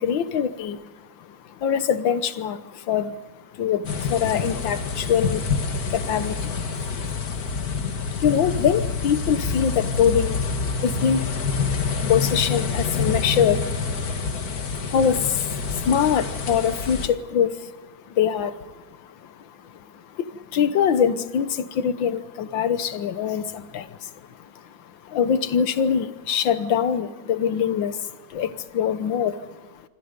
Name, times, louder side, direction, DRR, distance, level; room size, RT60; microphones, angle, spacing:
voice 1, 0.0-3.2 3.5-14.2 14.7-17.7 18.1-29.8, left 8 dB, 70° left, 13 dB, 1.8 m, -25 dB
sound 1, 3.8-17.1, left 4 dB, 50° left, 2.0 m, -27 dB
26.0 x 25.5 x 5.3 m, 1.2 s
omnidirectional pair, 2.2 m